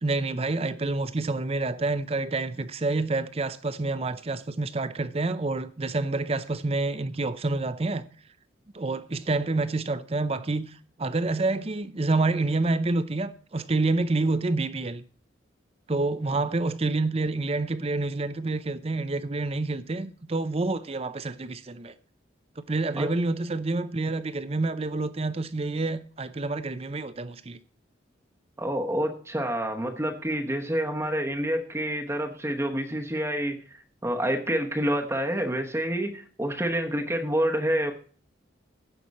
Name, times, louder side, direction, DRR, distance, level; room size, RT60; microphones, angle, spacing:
voice 1, 0.0-8.0 8.7-15.0 15.9-21.9 22.6-27.6, right 3 dB, 30° right, 0.6 m, -28 dB
voice 2, 28.6-37.9, right 1 dB, 15° right, 1.0 m, -28 dB
16.0 x 6.0 x 4.1 m
head